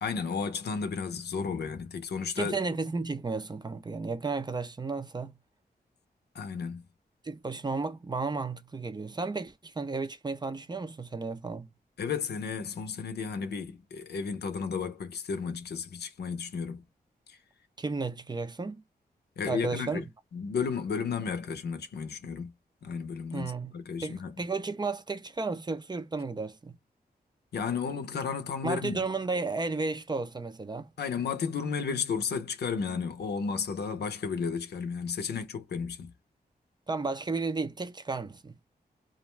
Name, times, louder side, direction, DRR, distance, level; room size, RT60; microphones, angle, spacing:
voice 1, 0.0-2.6 6.3-6.8 12.0-16.8 17.3-17.4 19.4-20.0 20.3-22.5 22.8-24.4 27.5-29.1 31.0-36.1, left 5 dB, 85° left, 0.6 m, -33 dB
voice 2, 2.4-5.3 7.2-11.7 17.8-18.8 19.5-20.0 23.3-23.7 24.0-26.8 28.6-30.9 36.9-38.5, right 3 dB, 25° right, 0.5 m, -33 dB
2.5 x 2.1 x 3.0 m
wide cardioid pair, 80°, 17 cm